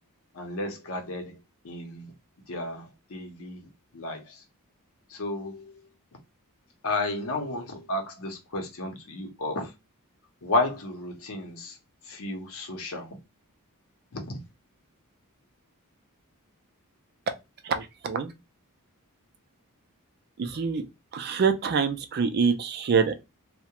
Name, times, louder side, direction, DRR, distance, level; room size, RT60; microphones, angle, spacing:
voice 1, 0.3-1.4 1.6-2.1 2.5-3.6 3.9-4.4 5.1-5.9 6.8-9.7 10.4-11.8 12.1-13.1 14.1-14.4, left 2 dB, 65° left, 0.7 m, -32 dB
voice 2, 17.6-18.3 20.4-20.8 21.1-23.1, right 5 dB, 45° right, 0.4 m, -25 dB
2.3 x 2.1 x 2.8 m
head